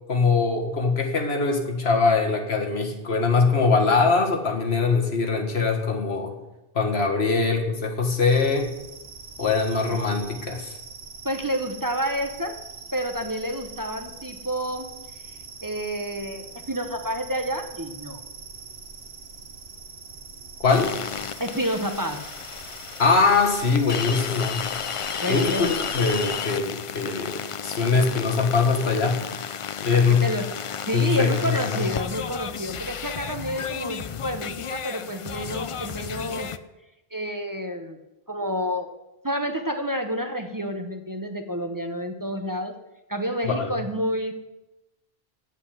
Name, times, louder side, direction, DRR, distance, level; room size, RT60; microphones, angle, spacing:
voice 1, 0.1-6.3 6.8-8.7 9.4-10.8 20.6-20.9 23.0-24.6 25.3-25.7 25.9-29.2 29.8-30.2 30.9-31.9 43.4-43.7, left 4 dB, 90° left, 3 dB, 1.9 m, -22 dB
sound 1, 8.3-26.3, right 4 dB, 85° right, 1.3 m, -43 dB
voice 2, 11.2-12.6 12.9-14.9 15.6-18.2 21.4-22.2 25.2-25.7 29.8-30.5 30.9-36.5 37.1-38.0 38.3-38.9 39.2-42.7 43.1-44.3, equal, 20° right, 5 dB, 0.8 m, -29 dB
sound 2, 20.7-36.6, left 7 dB, 50° left, 0.4 m, -33 dB
8.4 x 7.7 x 9.0 m, 0.96 s
omnidirectional pair, 1.0 m